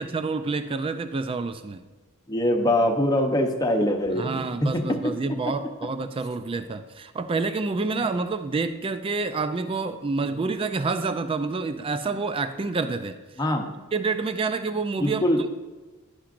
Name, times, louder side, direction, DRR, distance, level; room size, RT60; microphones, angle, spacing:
voice 1, 0.0-1.8 4.2-13.2 13.9-15.2, right 4 dB, 25° right, 10 dB, 0.3 m, -28 dB
voice 2, 2.3-5.1 5.5-5.6 7.9-8.0 13.4-13.7 15.0-15.4, left 1 dB, 15° left, 3 dB, 0.8 m, -23 dB
11.0 x 8.7 x 2.5 m, 1.2 s
head